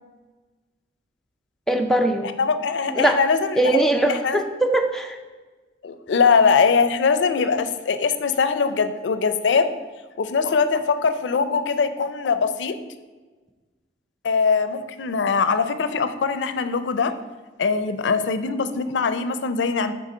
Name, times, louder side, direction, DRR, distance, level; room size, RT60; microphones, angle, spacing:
voice 1, 1.7-2.3 2.9-3.2 3.6-5.2, right 1 dB, ahead, 2 dB, 0.4 m, -21 dB
voice 2, 2.2-3.6 4.1-4.4 5.8-9.7 10.2-12.8 14.2-17.1 17.6-19.9, left 5 dB, 90° left, 11 dB, 0.4 m, -21 dB
6.6 x 3.8 x 4.9 m, 1.3 s
head